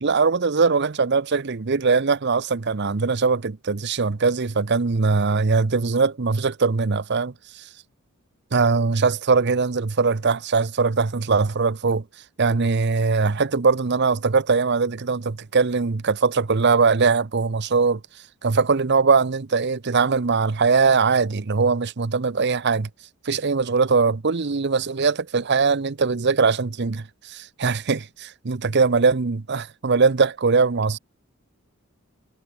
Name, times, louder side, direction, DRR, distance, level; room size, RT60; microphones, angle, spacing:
voice 1, 0.0-7.7 8.5-12.0 12.4-18.0 18.4-22.9 23.2-31.0, right 4 dB, 55° right, 0.7 m, -21 dB
head